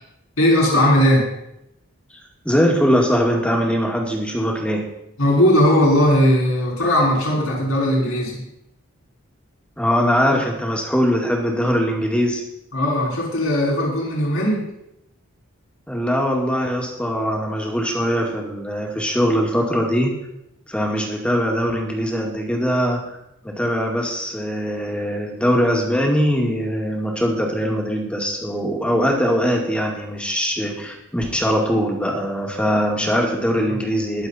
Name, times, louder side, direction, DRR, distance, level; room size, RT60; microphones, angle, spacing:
voice 1, 0.4-1.3 5.2-8.5 12.7-14.7, left 1 dB, 75° left, -3 dB, 5.5 m, -18 dB
voice 2, 2.4-4.8 9.8-12.4 15.9-20.2 20.7-23.2 23.4-34.3, equal, 5° left, 0 dB, 2.1 m, -21 dB
21.0 x 7.3 x 4.3 m, 0.83 s
head